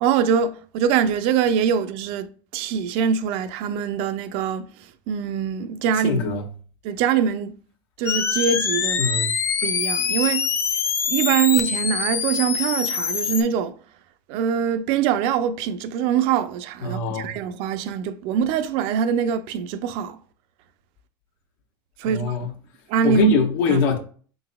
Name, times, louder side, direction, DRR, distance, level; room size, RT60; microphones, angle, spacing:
voice 1, 0.0-4.7 5.1-6.2 6.8-7.5 8.0-9.1 9.6-10.5 11.1-13.8 14.3-20.2 22.0-22.5 22.9-23.2 23.7-23.8, right 8 dB, 60° right, 0.4 m, -23 dB
voice 2, 6.0-6.4 9.0-9.3 16.8-17.3 22.0-22.5 23.0-24.0, left 2 dB, 85° left, 0.9 m, -22 dB
sound 1, 8.1-13.4, left 6 dB, 25° left, 0.4 m, -24 dB
4.0 x 4.0 x 2.2 m
supercardioid pair, 145°, 11 cm